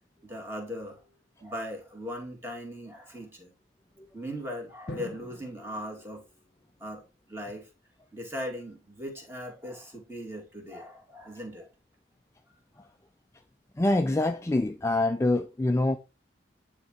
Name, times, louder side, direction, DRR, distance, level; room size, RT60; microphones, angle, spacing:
voice 1, 0.2-1.0 1.4-3.5 4.1-6.2 6.8-7.0 7.3-7.7 8.1-11.7, equal, 15° right, 1.9 m, -39 dB
Drum, 4.9-7.0, left 2 dB, 55° left, 0.8 m, -45 dB
voice 2, 13.8-16.0, left 2 dB, 15° left, 0.3 m, -25 dB
9.4 x 3.7 x 4.3 m
head